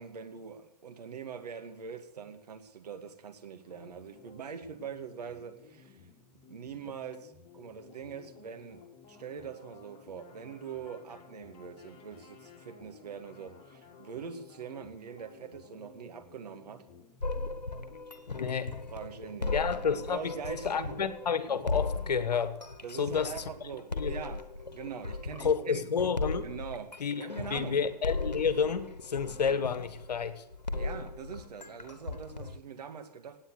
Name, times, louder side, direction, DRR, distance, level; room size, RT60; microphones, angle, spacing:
voice 1, 0.0-6.0 6.5-8.8 9.1-16.8 18.9-19.6 20.1-21.0 22.8-25.8 26.4-27.8 30.7-33.4, right 7 dB, 70° right, 2.2 m, -43 dB
sound 1, 3.6-19.8, left 6 dB, 30° left, 4.1 m, -55 dB
sound 2, 17.2-32.6, left 3 dB, 90° left, 1.2 m, -37 dB
voice 2, 18.3-18.7 19.5-22.6 23.0-23.3 24.0-24.1 25.4-26.5 27.0-30.4, left 6 dB, 70° left, 1.5 m, -30 dB
17.0 x 9.2 x 6.6 m
figure-of-eight pair, 105°, 21 cm